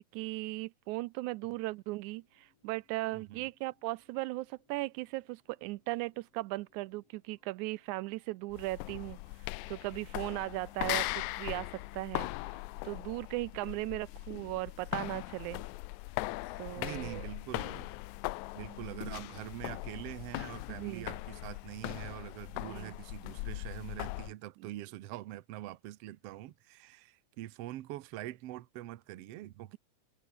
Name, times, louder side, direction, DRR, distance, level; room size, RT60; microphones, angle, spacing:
voice 1, 0.0-15.6 16.6-17.3 20.7-21.1 22.7-22.9 24.6-24.7, right 20 dB, 85° right, 2.0 m, -38 dB
sound 1, 2.1-15.9, left 4 dB, 55° left, 5.4 m, -73 dB
voice 2, 3.1-3.4 16.8-17.9 18.5-29.8, right 15 dB, 65° right, 1.7 m, -44 dB
sound 2, 8.5-24.3, left 20 dB, 85° left, 1.9 m, -40 dB
omnidirectional pair, 3.4 m